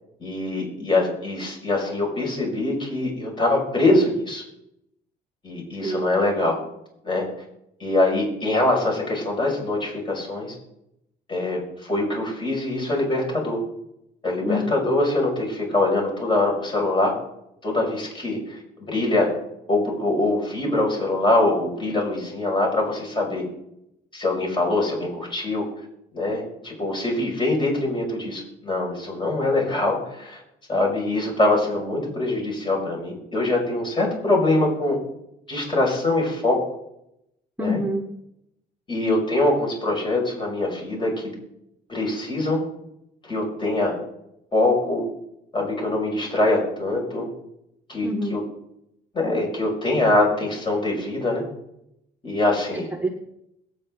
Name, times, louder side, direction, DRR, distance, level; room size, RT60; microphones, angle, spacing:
voice 1, 0.2-4.4 5.4-6.6 7.0-7.2 7.8-10.5 11.3-13.6 14.2-17.1 17.6-19.3 19.7-23.4 24.1-25.6 26.1-30.4 30.7-35.0 35.5-36.7 37.6-37.8 38.9-41.3 41.9-42.6 43.2-44.0 44.5-45.0 45.5-47.3 47.9-48.4 49.1-51.4 52.2-52.9, left 2 dB, 30° left, -1 dB, 6.5 m, -23 dB
voice 2, 37.6-38.0 48.0-48.4 52.7-53.1, left 1 dB, 10° right, 2 dB, 1.5 m, -26 dB
22.0 x 9.0 x 4.0 m, 0.80 s
cardioid pair, 110°, 17 cm